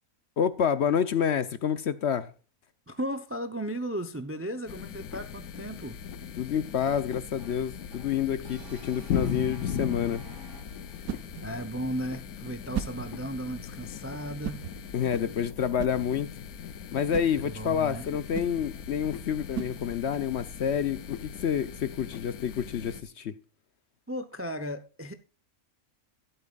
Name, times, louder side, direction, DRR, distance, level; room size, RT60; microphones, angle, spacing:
voice 1, 0.4-2.3 6.4-10.2 14.9-16.3 16.9-23.3, left 8 dB, 60° left, 0.8 m, -28 dB
voice 2, 2.9-6.0 11.0-11.1 11.4-14.7 17.4-18.1 24.1-25.1, right 1 dB, 20° right, 0.4 m, -35 dB
sound 1, 4.7-23.0, left 8 dB, 80° left, 1.2 m, -39 dB
Brass instrument, 7.4-11.2, right 2 dB, 55° right, 2.2 m, -50 dB
sound 2, 10.6-20.3, right 9 dB, 85° right, 1.2 m, -41 dB
12.5 x 12.0 x 2.4 m
omnidirectional pair, 1.5 m